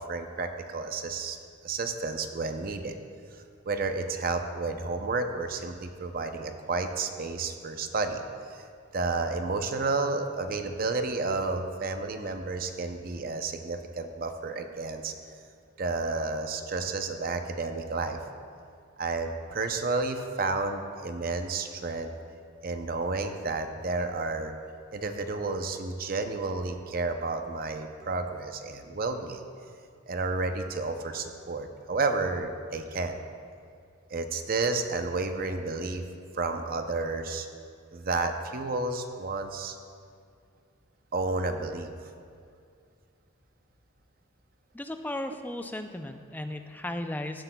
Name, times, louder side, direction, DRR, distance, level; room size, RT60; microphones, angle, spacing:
voice 1, 0.0-1.4 1.6-3.0 3.3-8.2 8.5-8.6 8.9-15.1 15.8-18.2 19.0-22.1 22.6-24.5 24.9-29.4 30.1-33.2 34.1-36.0 36.3-37.5 37.9-39.8 41.1-41.9, right 3 dB, 45° right, 6 dB, 0.6 m, -31 dB
voice 2, 44.7-47.4, left 1 dB, 10° left, 7 dB, 0.3 m, -35 dB
15.0 x 7.9 x 2.3 m, 2.3 s
head